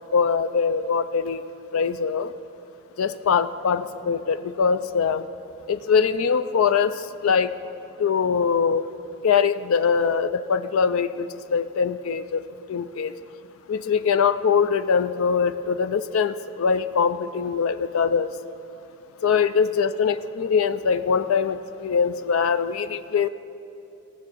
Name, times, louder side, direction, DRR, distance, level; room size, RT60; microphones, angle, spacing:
voice 1, 0.1-2.3 3.0-5.2 5.7-7.6 8.0-8.8 9.2-13.1 13.7-18.3 19.2-23.3, left 6 dB, 80° left, 12 dB, 0.4 m, -23 dB
17.5 x 7.1 x 6.1 m, 2.7 s
head